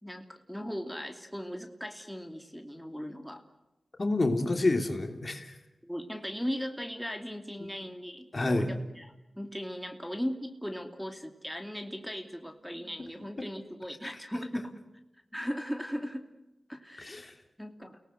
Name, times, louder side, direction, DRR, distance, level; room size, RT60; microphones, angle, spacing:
voice 1, 0.0-3.4 5.8-14.8 15.3-16.2 16.7-17.3 17.6-18.0, equal, ahead, 4 dB, 2.8 m, -38 dB
voice 2, 4.0-5.5 8.3-8.7 17.0-17.3, left 2 dB, 45° left, 5 dB, 3.2 m, -28 dB
29.0 x 19.0 x 8.1 m, 0.96 s
cardioid pair, 45°, 0 cm